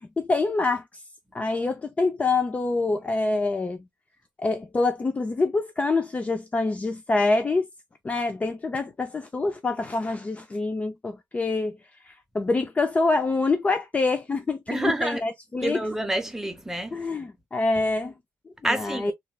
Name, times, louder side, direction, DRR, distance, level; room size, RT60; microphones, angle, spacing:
voice 1, 0.2-0.8 1.3-3.8 4.4-7.7 8.0-11.7 12.1-15.8 16.9-18.1 18.6-19.1, left 3 dB, 25° left, 0.4 m, -26 dB
voice 2, 14.7-15.2 15.6-17.0 18.6-19.1, right 1 dB, 5° right, 0.7 m, -28 dB
3.2 x 2.4 x 2.2 m
cardioid pair, 110°, 6 cm